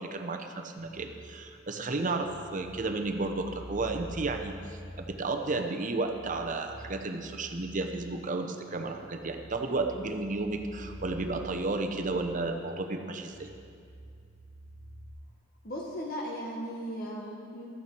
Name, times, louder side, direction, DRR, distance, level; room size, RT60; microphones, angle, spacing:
voice 1, 0.0-4.5 5.0-13.5, right 3 dB, 40° right, 5 dB, 0.8 m, -32 dB
sound 1, 0.8-15.1, equal, 30° left, 3.1 m, -48 dB
voice 2, 15.6-17.7, equal, 50° left, -2 dB, 1.1 m, -37 dB
13.5 x 8.9 x 4.5 m, 2.3 s
head